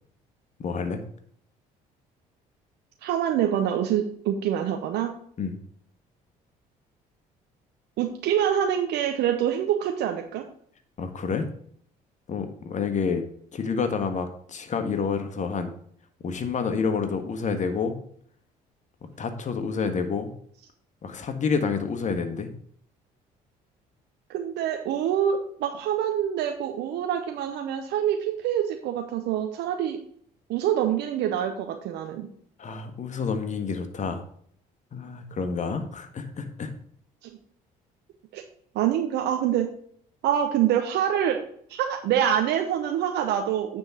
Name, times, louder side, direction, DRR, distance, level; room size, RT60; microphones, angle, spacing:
voice 1, 0.6-1.0 5.4-5.5 11.0-11.5 12.3-13.2 13.5-15.7 16.2-18.0 19.2-20.3 21.0-22.5 32.6-34.2 34.9-36.7, left 5 dB, 40° left, 6 dB, 1.3 m, -28 dB
voice 2, 3.0-5.1 8.0-10.4 24.3-30.0 30.5-32.3 37.2-37.4 38.3-38.4 38.7-39.7 40.2-41.4 41.7-43.8, right 10 dB, 70° right, 4 dB, 0.8 m, -25 dB
9.3 x 3.7 x 6.0 m, 0.63 s
supercardioid pair, 65°, 18 cm